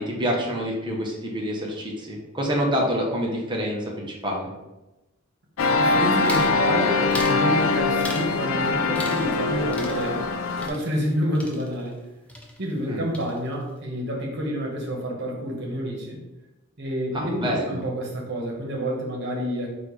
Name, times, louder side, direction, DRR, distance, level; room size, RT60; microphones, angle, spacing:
voice 1, 0.0-4.5 12.8-13.0 17.1-17.8, equal, 20° right, -1 dB, 0.8 m, -27 dB
sound 1, 5.6-10.7, left 3 dB, 75° left, 0.4 m, -23 dB
voice 2, 5.7-10.3 10.6-12.0 12.6-16.2 16.8-19.7, equal, 55° right, -1 dB, 1.1 m, -28 dB
sound 2, 6.2-6.6 7.1-7.4 8.0-8.4 8.9-9.5 9.7-12.0 12.3-12.9 13.1-13.7, left 1 dB, 5° left, 0.5 m, -38 dB
4.3 x 2.5 x 4.5 m, 1.0 s
head